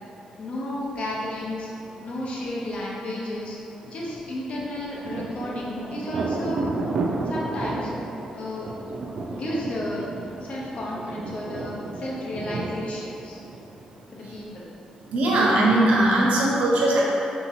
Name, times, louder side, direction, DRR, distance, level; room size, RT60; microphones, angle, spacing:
voice 1, 0.4-1.7 2.0-3.6 3.9-6.7 7.2-7.9 8.3-8.7 9.3-10.1 10.4-13.4 14.1-14.7, left 1 dB, 55° left, -4 dB, 0.9 m, -32 dB
Thunder, 4.5-14.0, right 3 dB, 60° right, 0.4 m, -32 dB
voice 2, 15.1-17.0, right 1 dB, 75° right, -4 dB, 0.9 m, -19 dB
3.6 x 2.9 x 4.2 m, 2.7 s
cardioid pair, 95°, 2 cm